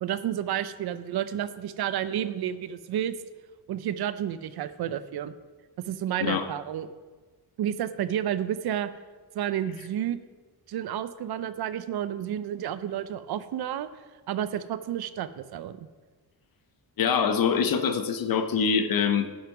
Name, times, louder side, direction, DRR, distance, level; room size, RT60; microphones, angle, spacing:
voice 1, 0.0-3.1 3.7-5.3 5.9-6.9 7.6-8.9 9.3-10.2 10.7-13.9 14.3-15.9, right 10 dB, 70° right, 13 dB, 0.6 m, -31 dB
voice 2, 17.0-19.3, left 6 dB, 60° left, 8 dB, 0.9 m, -24 dB
10.5 x 5.7 x 5.8 m, 1.3 s
cardioid pair, 140°, 40 cm